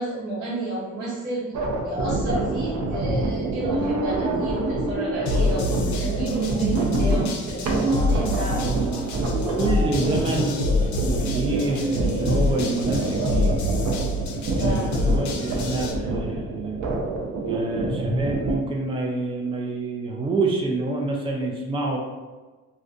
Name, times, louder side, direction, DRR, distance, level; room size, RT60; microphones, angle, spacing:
voice 1, 0.0-1.5 1.8-8.8 11.5-11.8 14.6-15.2, right 1 dB, 90° right, -4 dB, 0.9 m, -31 dB
sound 1, 1.5-18.6, right 2 dB, 65° right, 0.5 m, -26 dB
sound 2, 5.3-15.9, left 2 dB, 70° left, 0.5 m, -26 dB
voice 2, 8.6-9.1 9.5-10.6 11.2-13.6 14.5-16.8 17.5-22.0, right 2 dB, 20° right, 0 dB, 0.4 m, -27 dB
2.5 x 2.2 x 2.4 m, 1.3 s
cardioid pair, 90°, 30 cm